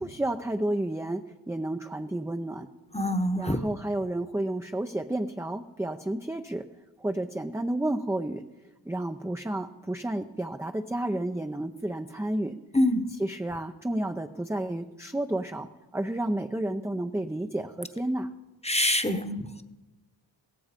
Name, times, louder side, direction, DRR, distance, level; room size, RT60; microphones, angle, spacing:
voice 1, 0.0-2.7 3.3-6.6 7.0-8.4 8.9-12.6 13.2-18.3, right 1 dB, 5° right, 5 dB, 0.6 m, -31 dB
voice 2, 2.9-3.6 12.7-13.0 18.6-19.4, left 1 dB, 15° left, 9 dB, 1.1 m, -25 dB
16.5 x 15.0 x 5.2 m, 1.1 s
wide cardioid pair, 50°, 46 cm